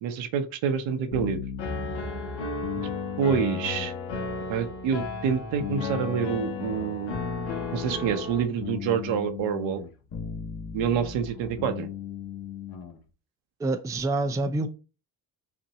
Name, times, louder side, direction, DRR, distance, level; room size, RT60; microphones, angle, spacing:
voice 1, 0.0-1.4 2.8-2.9 3.2-3.9 4.5-7.1 7.7-9.8 10.7-11.9, right 7 dB, 70° right, 0.9 m, -27 dB
sound 1, 1.1-13.0, left 7 dB, 50° left, 1.4 m, -37 dB
Piano, 1.6-8.4, left 3 dB, 70° left, 1.5 m, -35 dB
voice 2, 13.6-14.7, right 2 dB, 5° right, 0.4 m, -27 dB
5.8 x 2.6 x 2.9 m
supercardioid pair, 75°, 47 cm